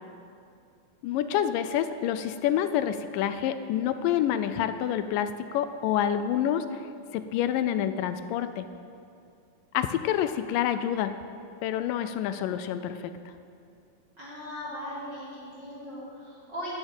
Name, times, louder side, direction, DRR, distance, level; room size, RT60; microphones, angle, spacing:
voice 1, 1.0-6.8 7.1-8.7 9.7-11.1 11.6-13.1, left 10 dB, 80° left, 10 dB, 2.0 m, -27 dB
voice 2, 14.2-16.7, equal, 30° right, -8 dB, 3.7 m, -39 dB
11.5 x 8.7 x 9.0 m, 2.4 s
omnidirectional pair, 4.3 m